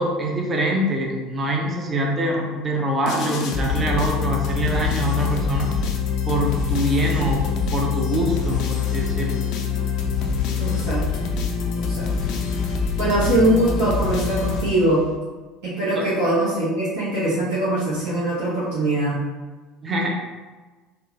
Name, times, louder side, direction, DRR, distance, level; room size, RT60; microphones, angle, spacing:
voice 1, 0.0-5.7 6.3-7.5 7.7-9.5 16.0-16.1 19.8-20.1, right 1 dB, 30° right, 0 dB, 0.7 m, -24 dB
sound 1, 3.1-15.2, left 6 dB, 55° left, 0.4 m, -25 dB
voice 2, 10.6-11.0 11.7-12.1 13.0-15.0 15.6-19.2, right 1 dB, 60° right, -11 dB, 1.1 m, -22 dB
3.3 x 2.1 x 3.1 m, 1.3 s
figure-of-eight pair, 65°, 0 cm